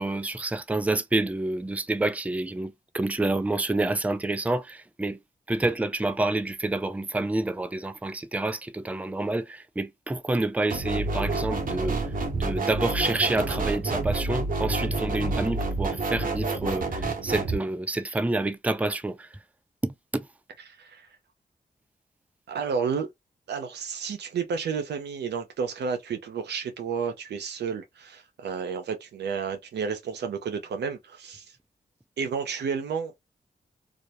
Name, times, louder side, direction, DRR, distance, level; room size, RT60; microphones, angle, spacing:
voice 1, 0.0-5.2 5.5-19.3 19.8-20.3, right 2 dB, 10° right, 0.4 m, -28 dB
sound 1, 10.7-17.6, right 3 dB, 55° right, 0.8 m, -28 dB
voice 2, 20.7-21.1 22.5-23.1 23.5-31.5 32.2-33.1, right 6 dB, 90° right, 0.6 m, -31 dB
2.4 x 2.0 x 2.8 m
cardioid pair, 45°, 17 cm